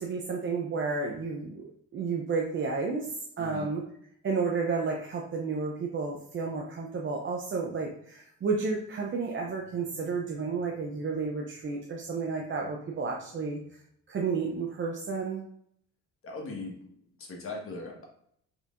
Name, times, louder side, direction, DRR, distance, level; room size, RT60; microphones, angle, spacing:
voice 1, 0.0-1.7 1.9-3.1 3.4-3.8 4.2-13.6 14.1-15.4, right 4 dB, 40° right, 0 dB, 0.6 m, -31 dB
voice 2, 3.4-3.7 16.2-16.7 17.2-18.1, left 3 dB, 45° left, -1 dB, 1.3 m, -39 dB
4.5 x 3.3 x 2.5 m, 0.68 s
cardioid pair, 90°, 30 cm